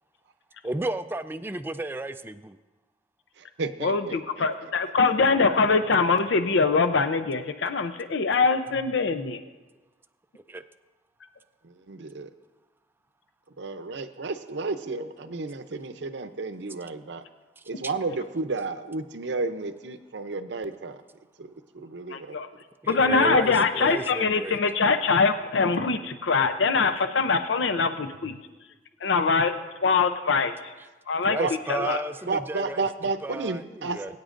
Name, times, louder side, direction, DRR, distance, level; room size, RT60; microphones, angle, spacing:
voice 1, 0.6-2.6 10.5-10.6 15.2-15.4 22.9-24.6 31.2-32.8 33.2-34.2, right 2 dB, 10° right, 10 dB, 0.3 m, -32 dB
voice 2, 3.6-4.2 11.9-12.3 13.6-17.2 17.7-21.0 21.4-22.4 31.4-31.5 31.8-32.0 32.3-34.2, right 3 dB, 70° right, 10 dB, 0.6 m, -32 dB
voice 3, 4.4-9.4 22.1-22.5 22.9-28.3 29.0-29.5 29.8-30.5 31.1-31.4 31.7-32.0, left 4 dB, 90° left, 9 dB, 0.6 m, -23 dB
22.0 x 9.5 x 2.5 m, 1.2 s
head